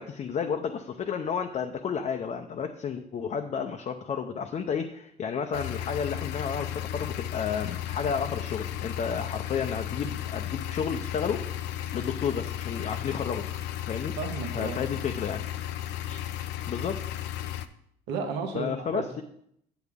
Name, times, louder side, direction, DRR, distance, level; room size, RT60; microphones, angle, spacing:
voice 1, 0.0-11.4 11.9-13.4 13.9-14.1 14.5-15.4 16.1-16.2 16.7-17.0 18.5-19.2, left 6 dB, 40° left, 4 dB, 0.6 m, -31 dB
sound 1, 5.5-17.7, left 12 dB, 85° left, 0.5 m, -34 dB
voice 2, 14.2-14.8 18.1-19.0, right 5 dB, 85° right, 4 dB, 1.2 m, -33 dB
8.1 x 7.9 x 3.6 m, 0.71 s
cardioid pair, 110°, 17 cm